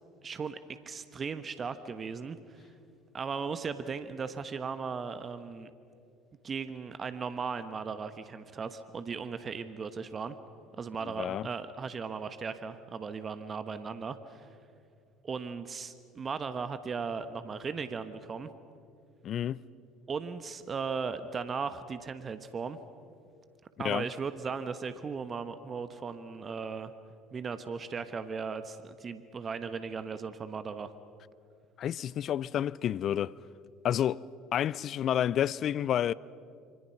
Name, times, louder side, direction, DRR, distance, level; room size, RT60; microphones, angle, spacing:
voice 1, 0.2-0.6 0.8-2.6 3.1-5.7 6.4-10.4 10.8-14.5 15.2-18.5 20.1-22.8 23.8-26.9 27.3-30.9, right 5 dB, 35° right, 1.3 m, -37 dB
voice 2, 19.2-19.6 23.8-24.1 31.8-33.3 33.8-34.2 34.5-36.1, left 10 dB, 50° left, 0.5 m, -29 dB
27.0 x 25.0 x 5.9 m
hypercardioid pair, 65°, 0 cm